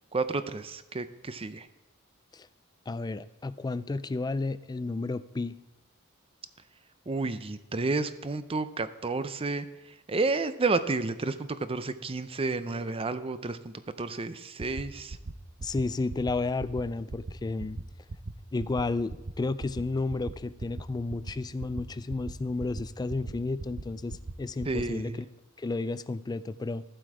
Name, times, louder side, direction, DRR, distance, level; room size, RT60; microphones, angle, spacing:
voice 1, 0.1-1.7 7.1-15.2 24.7-25.2, right 3 dB, 25° right, 12 dB, 0.6 m, -31 dB
voice 2, 2.9-5.6 15.6-17.8 18.5-25.3 25.6-26.8, left 3 dB, 20° left, 16 dB, 0.3 m, -32 dB
sound 1, 14.6-14.8 15.1-15.3 15.6-15.8 16.1-16.3 16.6-16.8 17.1-17.3 17.6-17.8 18.1-18.3 18.6-18.8 19.1-19.3 19.6-19.8 20.1-20.3 20.6-20.8 21.1-21.3 21.6-21.8 22.1-22.3 22.6-22.8 23.1-23.3 23.6-23.8 24.1-24.3 24.6-24.8, right 3 dB, 65° right, 0.8 m, -37 dB
14.0 x 7.7 x 4.9 m, 1.0 s
head